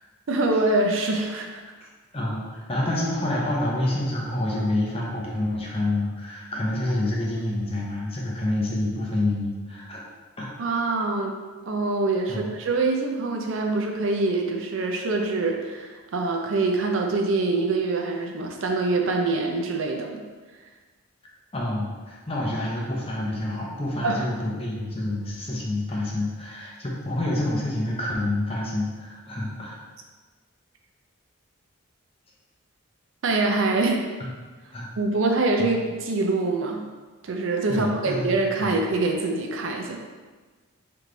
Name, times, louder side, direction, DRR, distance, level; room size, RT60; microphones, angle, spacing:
voice 1, 0.3-1.6 10.6-11.4 11.7-20.2 24.0-24.2 33.2-34.0 35.0-36.8 37.2-40.0, right 3 dB, 60° right, 2 dB, 0.5 m, -24 dB
voice 2, 2.1-10.0 10.4-10.5 12.3-12.4 21.5-29.8 34.7-34.9 35.6-35.7 37.7-38.3 38.6-38.7, left 1 dB, 25° left, -4 dB, 0.7 m, -28 dB
3.4 x 3.1 x 3.8 m, 1.4 s
head